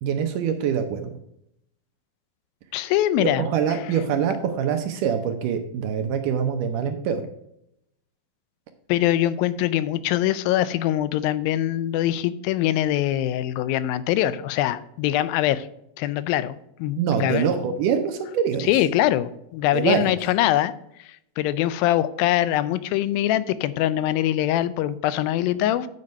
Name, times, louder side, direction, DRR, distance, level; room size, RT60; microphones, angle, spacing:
voice 1, 0.0-1.1 3.2-7.2 17.0-18.7 19.7-20.1, right 7 dB, 75° right, 6 dB, 2.0 m, -24 dB
voice 2, 2.7-3.4 8.9-15.7 16.0-17.5 18.6-20.7 21.0-25.9, left 13 dB, 80° left, 15 dB, 2.3 m, -23 dB
9.5 x 5.3 x 5.3 m, 0.77 s
omnidirectional pair, 4.3 m